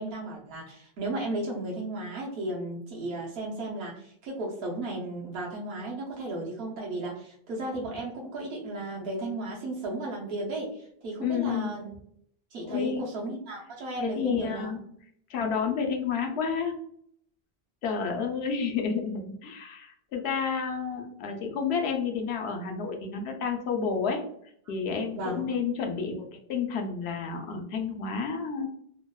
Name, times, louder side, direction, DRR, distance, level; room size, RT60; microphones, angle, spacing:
voice 1, 0.0-11.9 12.5-14.7 25.1-25.5, right 2 dB, 75° right, -4 dB, 1.0 m, -34 dB
voice 2, 11.2-11.7 12.6-13.0 14.0-14.8 15.3-16.8 17.8-24.2 24.7-26.2 26.5-28.7, left 6 dB, 85° left, 3 dB, 0.8 m, -30 dB
2.9 x 2.0 x 2.2 m, 0.68 s
omnidirectional pair, 1.0 m